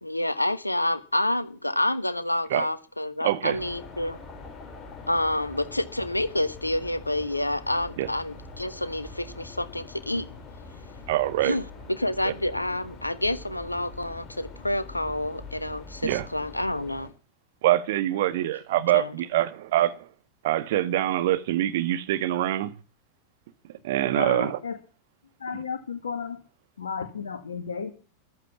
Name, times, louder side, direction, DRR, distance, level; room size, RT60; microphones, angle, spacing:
voice 1, 0.0-4.2 5.1-10.3 11.4-17.1 18.9-19.1, left 1 dB, 85° left, 1.3 m, -28 dB
voice 2, 3.2-3.6 8.0-8.1 11.1-11.6 12.2-12.3 16.0-16.3 17.6-20.0 20.4-22.7 23.8-24.6 25.5-25.6, right 14 dB, 55° right, 1.6 m, -24 dB
sound 1, 3.5-17.1, left 3 dB, 20° left, 4.8 m, -44 dB
voice 3, 24.1-24.8 25.4-26.4 26.8-27.9, left 6 dB, 70° left, 1.8 m, -33 dB
14.5 x 12.0 x 6.0 m
figure-of-eight pair, 90°, 0 cm